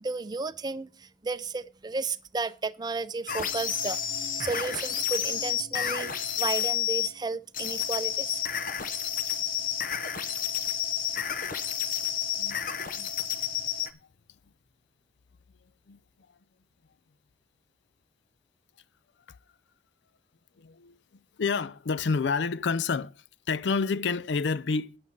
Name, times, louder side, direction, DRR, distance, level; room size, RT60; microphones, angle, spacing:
voice 1, 0.0-8.4, right 3 dB, 25° right, 0.5 m, -33 dB
sound 1, 3.3-7.1 7.5-13.9, left 9 dB, 50° left, 0.9 m, -30 dB
voice 2, 12.3-13.3 13.8-13.9 15.9-16.0 19.3-19.4 20.6-21.0 21.4-25.0, left 4 dB, 80° left, 0.5 m, -29 dB
9.5 x 8.6 x 5.4 m
head